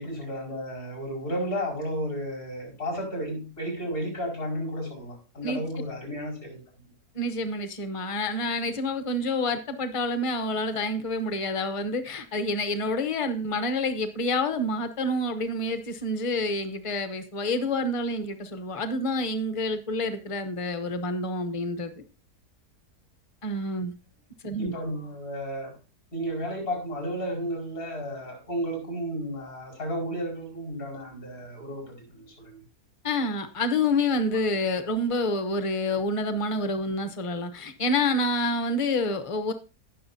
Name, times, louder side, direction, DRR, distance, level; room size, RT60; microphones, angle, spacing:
voice 1, 0.0-6.6 24.6-25.8 26.1-32.6, equal, 65° left, -1 dB, 5.3 m, -33 dB
voice 2, 7.1-21.9 23.4-23.9 24.4-24.7 33.0-39.5, left 2 dB, 25° left, 9 dB, 0.8 m, -28 dB
17.5 x 6.2 x 2.7 m, 0.32 s
omnidirectional pair, 1.7 m